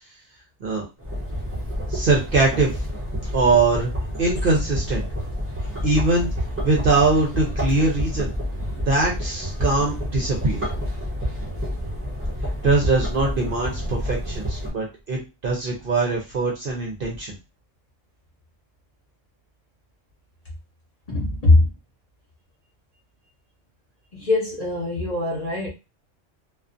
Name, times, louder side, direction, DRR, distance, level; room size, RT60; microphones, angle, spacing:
sound 1, 1.0-14.7, equal, 20° right, 0.4 m, -29 dB
voice 1, 1.9-2.8 3.3-3.9 4.2-5.0 5.8-6.3 6.6-8.3 8.7-10.6 12.6-17.3, right 3 dB, 55° right, 0.7 m, -22 dB
voice 2, 21.1-21.7 24.1-25.7, left 2 dB, 35° left, 0.8 m, -21 dB
2.4 x 2.3 x 2.4 m
omnidirectional pair, 1.3 m